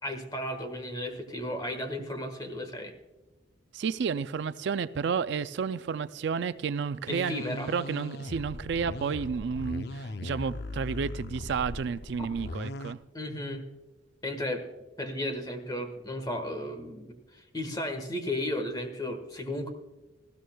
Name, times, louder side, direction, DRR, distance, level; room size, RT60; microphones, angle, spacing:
voice 1, 0.0-2.9 7.1-7.7 12.2-12.3 13.1-13.6 14.2-14.6 15.0-19.7, left 1 dB, 20° left, 7 dB, 1.4 m, -34 dB
voice 2, 3.7-13.0, right 6 dB, 55° right, 13 dB, 0.3 m, -31 dB
sound 1, 7.1-12.9, left 1 dB, 50° left, 0.5 m, -39 dB
19.5 x 14.0 x 2.3 m, 1.1 s
head